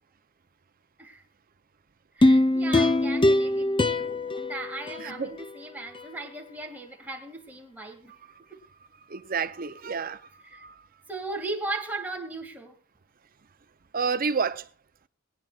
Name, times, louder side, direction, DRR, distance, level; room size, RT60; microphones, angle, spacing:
sound 1, 2.2-5.5 5.9-6.0, left 2 dB, 25° left, 0.6 m, -23 dB
voice 1, 2.2-8.1 8.5-8.6 10.4-10.6 11.1-12.8, right 2 dB, 10° right, 2.4 m, -37 dB
voice 2, 5.0-5.3 9.1-10.9 13.9-14.6, right 5 dB, 45° right, 0.7 m, -30 dB
21.5 x 10.5 x 2.5 m
head